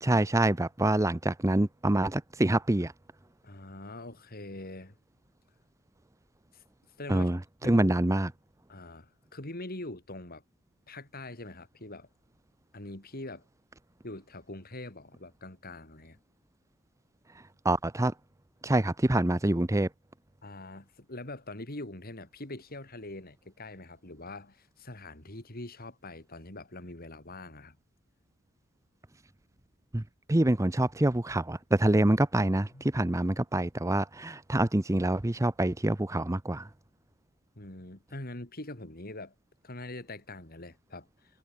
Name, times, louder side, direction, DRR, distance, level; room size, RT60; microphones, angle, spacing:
voice 1, 0.0-2.9 7.1-8.3 17.6-18.1 18.6-19.9 29.9-30.0 30.3-36.7, right 1 dB, 15° right, 0.7 m, -26 dB
voice 2, 3.4-5.0 6.5-6.6 7.0-7.4 7.6-8.0 8.7-10.4 10.9-12.1 12.7-13.5 14.0-16.2 20.4-27.8 32.7-32.8 37.6-39.3 39.6-41.4, left 2 dB, 45° left, 3.5 m, -43 dB
head